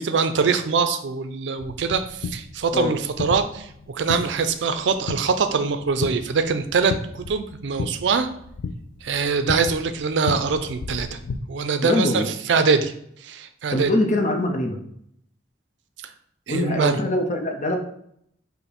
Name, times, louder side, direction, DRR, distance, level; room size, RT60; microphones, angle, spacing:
voice 1, 0.0-8.3 9.0-11.2 11.5-12.9 13.2-13.9 16.5-17.0, right 5 dB, 75° right, 10 dB, 0.4 m, -23 dB
sound 1, 1.6-11.4, left 4 dB, 90° left, 0.4 m, -34 dB
voice 2, 11.8-12.3 13.7-14.8 16.5-17.8, left 1 dB, 40° left, 4 dB, 0.7 m, -23 dB
5.5 x 2.1 x 4.2 m, 0.69 s
head